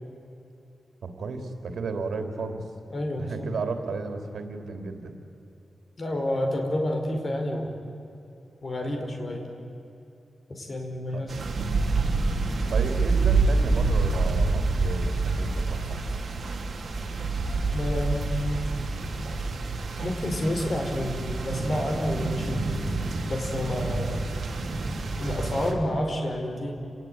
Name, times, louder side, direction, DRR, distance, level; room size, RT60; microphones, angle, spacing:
voice 1, 1.0-2.6 3.2-5.1 11.1-11.2 12.7-16.0, right 4 dB, 85° right, 6 dB, 3.1 m, -33 dB
voice 2, 2.9-3.5 6.0-7.8 8.6-9.5 10.5-11.4 17.7-18.7 20.0-22.7 23.2-24.2 25.2-26.7, left 1 dB, 40° left, 3 dB, 4.9 m, -29 dB
sound 1, 11.3-25.7, right 3 dB, 55° right, 3.2 m, -27 dB
30.0 x 19.0 x 9.5 m, 2.8 s
wide cardioid pair, 135°, 0 cm